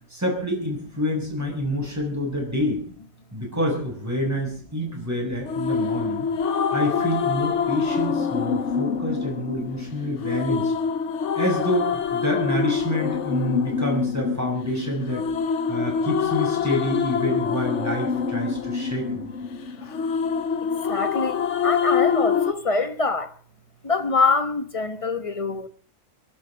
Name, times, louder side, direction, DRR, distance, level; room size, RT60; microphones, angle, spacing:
voice 1, 0.1-2.8 3.3-6.3 6.7-10.7 11.3-15.2 15.7-19.3, left 1 dB, 10° right, 7.2 m, -27 dB
sound 1, 5.5-22.5, left 6 dB, 65° left, 1.3 m, -25 dB
voice 2, 19.8-20.1 20.7-23.3 23.8-25.7, left 4 dB, 25° left, 1.3 m, -25 dB
23.5 x 11.5 x 5.2 m
omnidirectional pair, 1.4 m